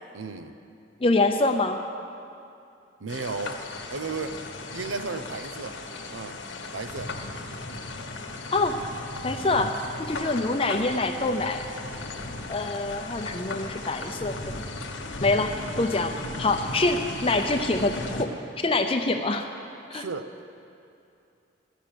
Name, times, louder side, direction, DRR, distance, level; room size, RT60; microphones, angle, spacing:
voice 1, 0.1-0.6 3.0-3.6 3.9-4.4 4.7-5.8 6.1-6.4 6.7-7.1 19.9-20.3, right 4 dB, 90° right, 8 dB, 0.7 m, -34 dB
voice 2, 1.0-1.8 8.5-8.8 9.2-11.6 12.5-14.6 15.2-19.5 19.9-20.0, left 2 dB, 30° left, 5 dB, 0.5 m, -25 dB
sound 1, 3.1-18.3, left 2 dB, 85° left, 1.3 m, -36 dB
14.5 x 6.8 x 9.1 m, 2.6 s
head